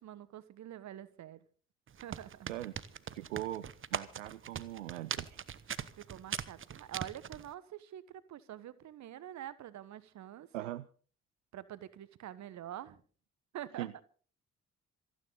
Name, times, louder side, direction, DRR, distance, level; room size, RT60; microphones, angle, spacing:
voice 1, 0.0-1.4 2.0-2.5 6.0-10.7 11.5-13.0 13.5-14.0, right 12 dB, 50° right, 1.3 m, -46 dB
sound 1, 1.9-7.5, right 8 dB, 35° right, 1.1 m, -40 dB
voice 2, 3.1-5.4 10.5-10.8 13.8-13.9, right 14 dB, 80° right, 0.6 m, -40 dB
27.0 x 10.0 x 3.9 m
figure-of-eight pair, 45°, 37 cm